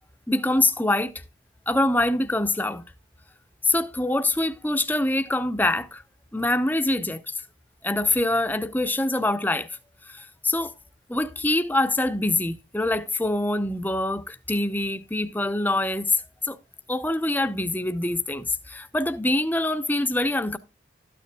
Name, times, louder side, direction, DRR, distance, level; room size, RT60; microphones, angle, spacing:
voice 1, 0.3-1.1 1.7-2.8 3.6-6.0 6.3-7.3 7.8-9.8 10.1-10.7 11.1-16.6 16.9-20.6, left 2 dB, 10° left, 0.7 m, -24 dB
13.0 x 9.4 x 2.2 m
head